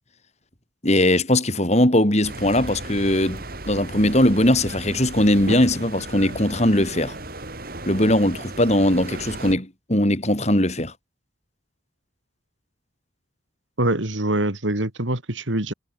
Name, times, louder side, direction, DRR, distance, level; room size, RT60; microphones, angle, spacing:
voice 1, 0.8-7.2 7.9-10.9, left 1 dB, 35° left, 5.0 m, -20 dB
sound 1, 2.2-9.5, right 2 dB, 50° right, 3.9 m, -35 dB
voice 2, 13.8-15.7, right 1 dB, 85° right, 3.5 m, -24 dB
head